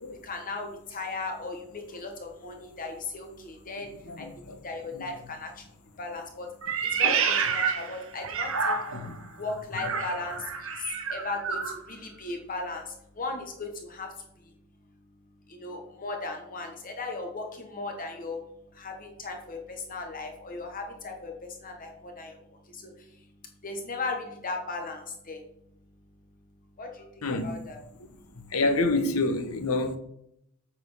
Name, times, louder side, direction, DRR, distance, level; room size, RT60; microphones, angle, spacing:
voice 1, 0.2-3.9 4.2-4.3 4.6-5.5 6.0-6.5 6.9-8.8 9.4-10.4 11.1-11.6 11.9-12.8 13.2-14.1 15.5-18.4 18.8-19.6 19.9-21.3 21.6-22.3 22.8-22.9 23.6-25.0 25.3-25.4 26.8-26.9 27.4-27.8, left 3 dB, 40° left, 1.1 m, -36 dB
voice 2, 4.1-4.6 4.9-5.1 8.9-9.2 27.2-27.6 28.5-30.0, left 2 dB, 90° left, 1.0 m, -27 dB
Meow, 6.6-9.2 9.7-11.8, right 6 dB, 70° right, 1.0 m, -29 dB
7.8 x 4.3 x 5.5 m
head